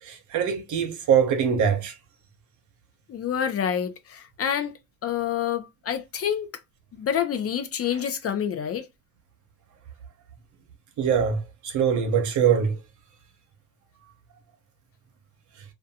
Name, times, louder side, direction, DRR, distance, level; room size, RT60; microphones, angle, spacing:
voice 1, 0.0-1.9 11.0-12.8, right 7 dB, 75° right, 0.7 m, -23 dB
voice 2, 3.1-4.7 5.0-6.5 6.9-8.8, left 9 dB, 50° left, 0.5 m, -27 dB
2.5 x 2.2 x 2.6 m
cardioid pair, 90°, 30 cm